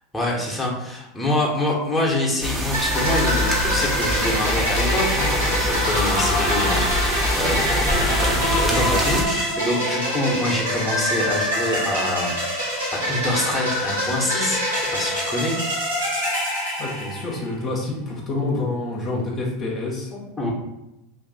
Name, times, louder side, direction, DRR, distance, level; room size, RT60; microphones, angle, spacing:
voice 1, 0.1-15.6 20.1-20.5, left 1 dB, 5° left, -4 dB, 1.0 m, -26 dB
sound 1, 2.4-9.2, equal, 15° right, 0.7 m, -25 dB
sound 2, 2.7-17.5, equal, 90° right, 1.4 m, -25 dB
voice 2, 16.8-20.1, left 2 dB, 40° left, -2 dB, 0.8 m, -27 dB
2.6 x 2.5 x 3.9 m, 0.89 s
hypercardioid pair, 85°, 0 cm